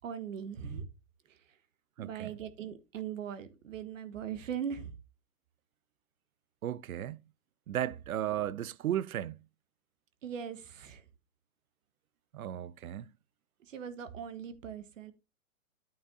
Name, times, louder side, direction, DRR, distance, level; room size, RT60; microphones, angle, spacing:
voice 1, 0.0-0.9 1.3-1.4 2.0-4.9 10.2-11.0 13.7-15.1, right 8 dB, 65° right, 1.4 m, -40 dB
voice 2, 2.0-2.3 6.6-7.2 7.7-9.4 12.3-13.1, right 11 dB, 85° right, 0.6 m, -35 dB
10.0 x 8.7 x 2.5 m
hypercardioid pair, 140°, 42 cm